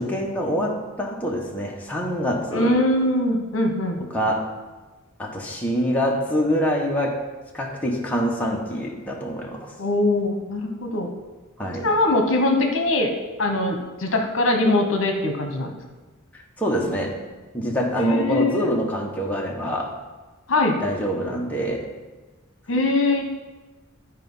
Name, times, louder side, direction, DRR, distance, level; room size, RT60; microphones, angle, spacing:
voice 1, 0.0-2.8 4.0-4.5 5.2-7.2 7.5-9.7 11.6-11.9 16.3-17.1 17.5-19.9 20.8-21.9, equal, 5° left, -2 dB, 1.1 m, -25 dB
voice 2, 2.5-4.0 9.8-11.1 11.8-13.1 13.4-15.7 18.0-18.7 20.5-20.8 22.7-23.2, left 2 dB, 65° left, 4 dB, 1.1 m, -22 dB
11.5 x 4.6 x 5.5 m, 1.2 s
head